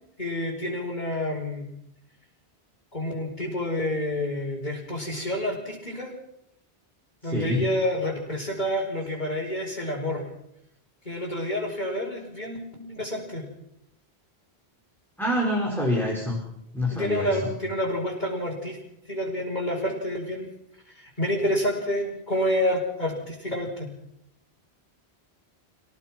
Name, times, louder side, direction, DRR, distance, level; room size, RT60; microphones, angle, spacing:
voice 1, 0.2-1.7 2.9-6.1 7.2-10.3 11.1-13.5 16.9-18.8 19.1-20.5 20.9-23.9, left 1 dB, 45° left, -5 dB, 5.5 m, -28 dB
voice 2, 7.2-7.7 15.2-16.4 16.7-17.5, left 1 dB, ahead, -3 dB, 5.1 m, -26 dB
29.5 x 17.5 x 6.2 m, 0.82 s
omnidirectional pair, 1.1 m